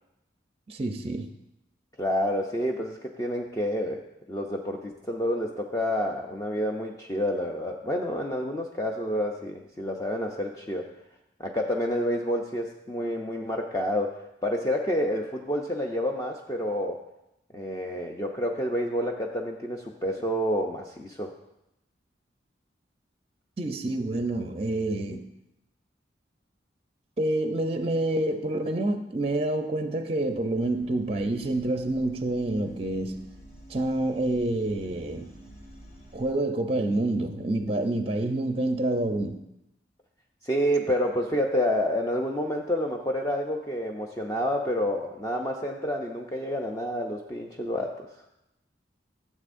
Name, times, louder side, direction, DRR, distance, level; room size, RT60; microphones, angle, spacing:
voice 1, 0.7-1.3 23.6-25.3 27.2-33.2 33.7-35.3 36.1-39.4, right 1 dB, 30° right, 7 dB, 0.5 m, -28 dB
voice 2, 2.0-4.0 4.3-10.9 11.4-17.0 17.5-21.3 40.4-48.1, equal, 20° left, 0 dB, 0.5 m, -29 dB
sound 1, 30.2-36.3, equal, 55° left, 1.8 m, -50 dB
13.5 x 7.3 x 2.6 m, 0.86 s
head